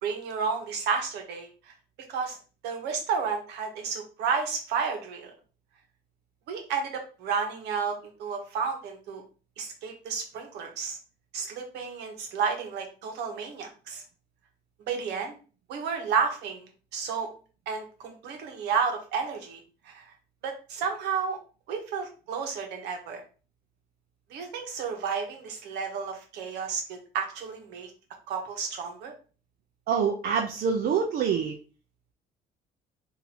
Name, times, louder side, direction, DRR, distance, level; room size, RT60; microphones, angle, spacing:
voice 1, 0.0-1.5 2.1-2.4 2.6-5.3 6.5-9.2 9.6-11.0 11.3-14.0 14.9-15.3 15.7-17.3 17.7-19.6 19.8-20.1 20.4-21.4 21.7-23.2 24.3-27.9 28.3-29.1, right 6 dB, 80° right, 3 dB, 1.1 m, -31 dB
voice 2, 29.9-31.5, right 6 dB, 65° right, 2 dB, 0.6 m, -26 dB
3.8 x 2.7 x 2.9 m, 0.36 s
cardioid pair, 110°, 17 cm